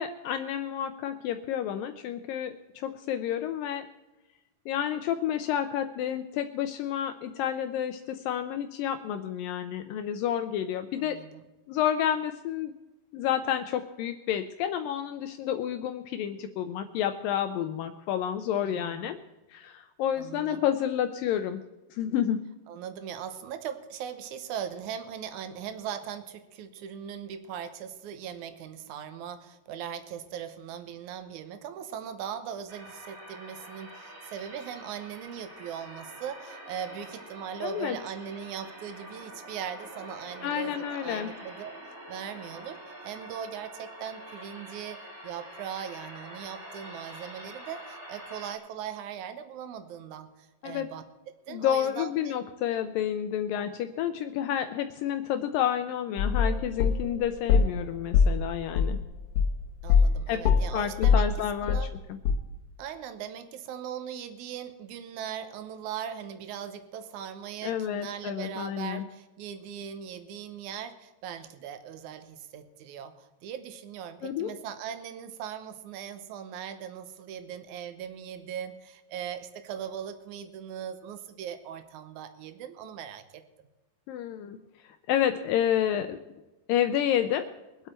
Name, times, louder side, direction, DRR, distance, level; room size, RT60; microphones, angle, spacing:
voice 1, 0.0-3.9 4.7-11.2 11.7-12.7 13.1-19.2 19.5-21.6 21.9-22.4 37.6-38.0 40.4-41.3 50.6-50.9 51.5-59.0 60.3-60.4 60.7-62.2 67.6-69.0 74.2-74.5 84.1-84.6 85.1-86.2 86.7-87.5, left 10 dB, 90° left, 8 dB, 2.0 m, -30 dB
voice 2, 11.0-11.4 18.6-19.0 20.2-20.6 22.7-41.7 42.1-42.8 43.0-50.3 50.6-51.0 51.5-52.5 59.8-61.3 61.6-61.9 62.8-83.4, right 8 dB, 75° right, 10 dB, 1.8 m, -39 dB
sound 1, 32.7-48.5, right 1 dB, 20° right, 3.1 m, -46 dB
sound 2, 56.2-57.8 58.1-60.2 60.4-62.0 62.3-62.4, left 6 dB, 65° left, 2.0 m, -23 dB
23.5 x 8.2 x 4.4 m, 1.0 s
omnidirectional pair, 4.8 m